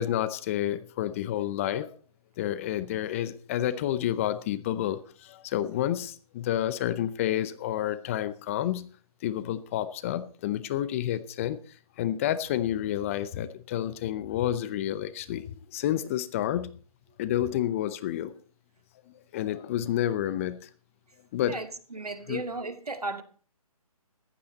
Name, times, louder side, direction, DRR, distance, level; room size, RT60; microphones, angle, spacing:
voice 1, 0.0-1.9 2.4-8.9 9.2-11.6 12.0-16.8 17.2-18.3 19.3-20.7 21.3-21.6 22.3-22.4, left 12 dB, 20° left, 0.7 m, -29 dB
voice 2, 21.5-23.2, right 2 dB, 90° right, 1.9 m, -35 dB
15.0 x 12.0 x 4.1 m
figure-of-eight pair, 145°, 19 cm